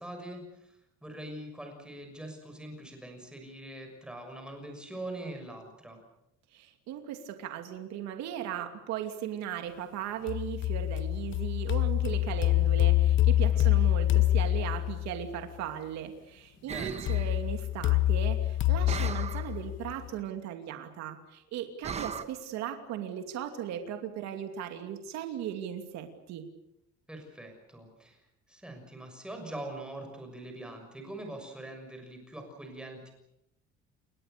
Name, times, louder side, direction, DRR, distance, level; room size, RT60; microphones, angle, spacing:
voice 1, 0.0-6.0 13.5-13.7 16.6-17.0 27.1-28.2 28.5-33.1, right 1 dB, 5° right, 3 dB, 6.5 m, -43 dB
voice 2, 6.5-26.4, right 9 dB, 70° right, 5 dB, 2.8 m, -37 dB
sound 1, 10.3-15.2 17.1-20.1, left 14 dB, 45° left, 1.0 m, -26 dB
sound 2, 16.7-17.4 18.9-19.6 21.8-22.2, right 6 dB, 20° right, 1.3 m, -37 dB
29.5 x 22.5 x 6.8 m, 0.84 s
cardioid pair, 175°, 29 cm